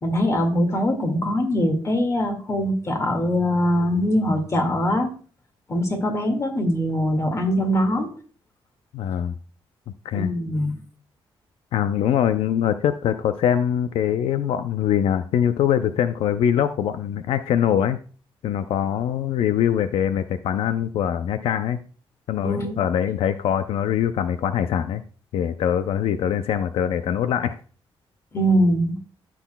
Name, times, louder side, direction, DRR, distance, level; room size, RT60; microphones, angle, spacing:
voice 1, 0.0-5.1 5.7-8.1 10.1-10.8 22.4-22.8 28.3-29.0, equal, 30° left, 4 dB, 1.9 m, -22 dB
voice 2, 8.9-9.3 10.0-10.3 11.7-18.0 18.4-21.8 22.3-25.0 25.3-27.6, left 9 dB, 85° left, 11 dB, 0.4 m, -23 dB
14.0 x 6.1 x 2.2 m, 0.39 s
cardioid pair, 115°, 10 cm